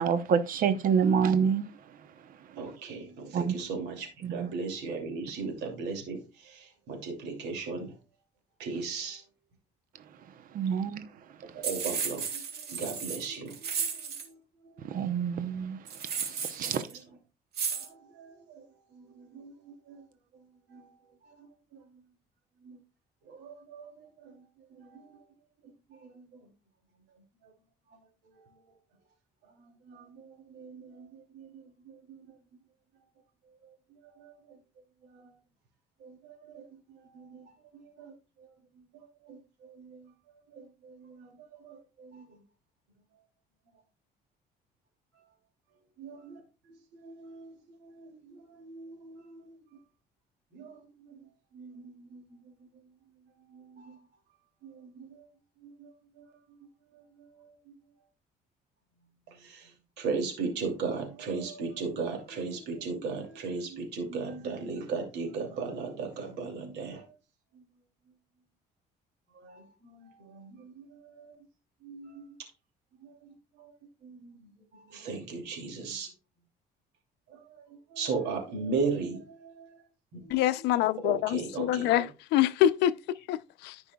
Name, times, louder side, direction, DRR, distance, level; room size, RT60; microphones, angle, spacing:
voice 1, 0.0-1.6 3.3-3.6 4.2-4.5 10.5-11.0 14.8-16.9, right 7 dB, 55° right, 0.8 m, -27 dB
voice 2, 2.5-7.9 8.6-9.2 11.6-12.4 12.7-13.9 14.2-14.4 16.6-16.7 17.7-18.6 18.9-20.0 20.7-20.8 22.6-22.8 23.3-23.9 24.2-24.3 24.8-25.1 26.1-26.2 29.9-31.1 31.3-31.5 32.1-32.2 34.2-34.3 36.0-36.2 36.5-36.7 37.1-37.5 38.0-38.1 39.3-40.1 40.6-41.3 41.6-42.4 46.0-46.4 46.9-47.5 47.8-49.6 50.5-50.8 51.5-52.2 53.5-54.0 54.6-55.1 55.6-55.9 59.4-59.7 60.0-67.0 69.4-71.3 71.8-72.3 73.6-73.7 74.0-76.1 77.9-79.7 80.1-80.4 81.0-82.0, right 4 dB, 85° right, 2.7 m, -37 dB
sound 1, 11.6-14.3 15.9-16.9 17.5-17.9, right 6 dB, 70° right, 2.5 m, -34 dB
voice 3, 80.3-83.8, left 12 dB, 85° left, 0.6 m, -26 dB
14.0 x 5.4 x 2.3 m
cardioid pair, 110°, 17 cm